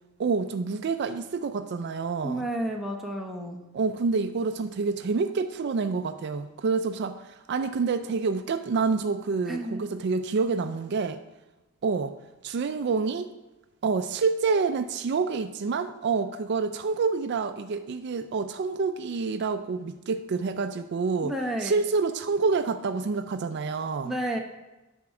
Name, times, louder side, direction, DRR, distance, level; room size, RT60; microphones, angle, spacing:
voice 1, 0.2-2.5 3.7-11.2 11.8-12.1 12.4-13.3 13.8-21.3 21.6-24.1, right 4 dB, 55° right, 10 dB, 0.4 m, -27 dB
voice 2, 2.2-3.6 9.5-9.8 21.2-21.8 24.0-24.4, right 1 dB, ahead, 0 dB, 1.0 m, -31 dB
9.7 x 4.3 x 5.9 m, 1.0 s
head